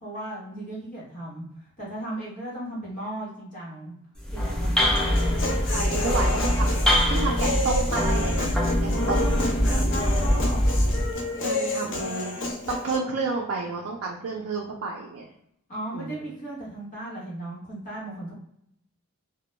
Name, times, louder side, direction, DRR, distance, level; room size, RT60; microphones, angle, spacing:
voice 1, 0.0-1.4 1.8-3.9 4.3-4.9 5.8-6.0 8.9-10.6 15.7-18.4, right 1 dB, 40° left, -7 dB, 0.9 m, -36 dB
sound 1, 4.2-11.1, equal, 5° left, 0.4 m, -23 dB
voice 2, 4.8-5.1 5.7-8.5 8.8-9.5 11.4-12.4 12.7-15.3 15.9-16.3, right 4 dB, 65° right, -1 dB, 0.4 m, -31 dB
Human voice, 5.0-13.0, left 2 dB, 60° left, 0.5 m, -30 dB
2.1 x 2.0 x 3.0 m, 0.75 s
head